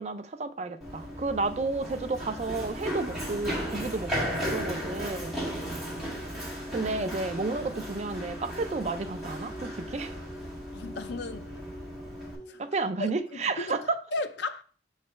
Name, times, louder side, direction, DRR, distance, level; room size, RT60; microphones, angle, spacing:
voice 1, 0.0-5.4 6.5-10.2 12.6-14.0, right 3 dB, 40° right, 0.5 m, -32 dB
Run, 0.8-12.4, equal, ahead, 1.7 m, -36 dB
sound 1, 3.7-12.8, equal, 45° left, 1.5 m, -48 dB
voice 2, 10.7-11.5 12.5-12.6 13.0-14.6, left 2 dB, 75° left, 0.5 m, -35 dB
6.6 x 3.3 x 4.3 m
head